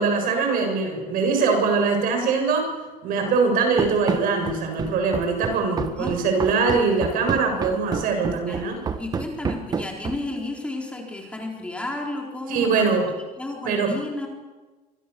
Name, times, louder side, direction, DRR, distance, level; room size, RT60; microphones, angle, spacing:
voice 1, 0.0-2.7 3.0-8.8 12.5-13.1 13.6-14.0, right 4 dB, 60° right, 4 dB, 7.4 m, -22 dB
Run, 3.8-10.4, right 5 dB, 25° right, 1.3 m, -29 dB
voice 2, 5.9-6.6 8.5-13.0 13.4-14.3, left 2 dB, 5° left, 0 dB, 4.2 m, -32 dB
26.5 x 26.0 x 7.0 m, 1.2 s
cardioid pair, 175°, 16 cm